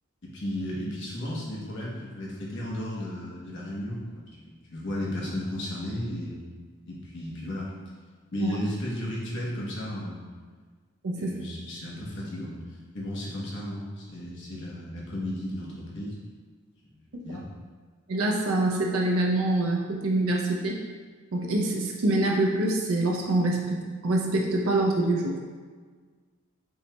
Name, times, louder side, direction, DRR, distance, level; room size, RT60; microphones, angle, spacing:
voice 1, 0.2-6.4 6.9-7.7 8.3-10.2 11.2-12.6 12.9-16.1 16.9-17.5, left 1 dB, 60° left, -5 dB, 1.0 m, -34 dB
voice 2, 18.1-20.8 21.3-25.3, right 2 dB, 90° right, 0 dB, 0.5 m, -25 dB
5.3 x 3.0 x 2.2 m, 1.5 s
head